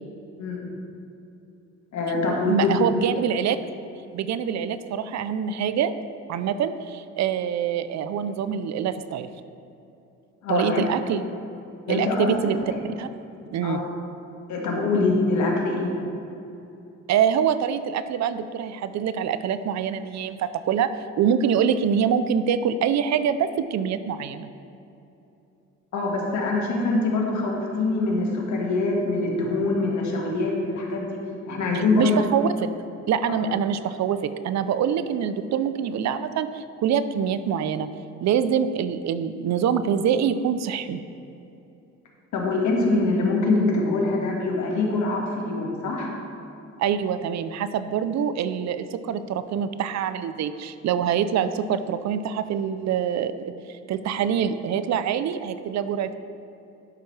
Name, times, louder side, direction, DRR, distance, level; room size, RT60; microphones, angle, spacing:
voice 1, 0.4-0.7 1.9-2.7 10.4-10.8 11.9-12.5 13.6-13.8 14.5-15.9 25.9-31.2 31.5-32.2 42.3-46.1, left 3 dB, 70° left, -1 dB, 1.7 m, -24 dB
voice 2, 2.5-3.6 4.1-5.9 6.3-9.3 10.5-11.2 11.9-12.6 13.0-13.1 13.5-13.8 17.1-20.9 21.2-24.5 31.7-32.7 33.1-37.9 38.2-41.0 46.8-56.2, right 8 dB, 65° right, 12 dB, 0.5 m, -25 dB
11.5 x 5.8 x 3.2 m, 2.8 s
cardioid pair, 90°, 30 cm